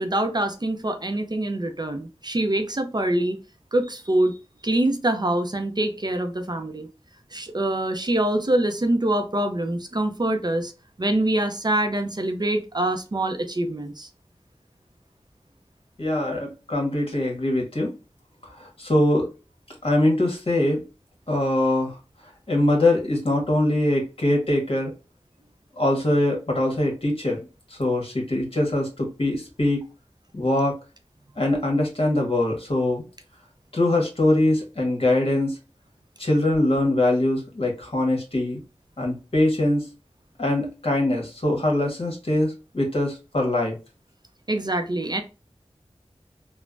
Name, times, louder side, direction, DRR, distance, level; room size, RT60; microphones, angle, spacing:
voice 1, 0.0-3.4 3.7-4.4 4.6-6.9 7.3-10.7 11.0-14.1 44.5-45.2, right 1 dB, 35° right, 0.5 m, -24 dB
voice 2, 16.0-17.9 18.6-19.3 19.8-20.8 21.3-22.0 22.5-24.9 25.8-29.8 30.3-30.7 31.4-33.0 33.7-35.6 36.2-38.6 39.0-39.8 40.4-43.8, left 1 dB, 55° left, 1.3 m, -22 dB
3.2 x 2.1 x 2.5 m
wide cardioid pair, 45°, 12 cm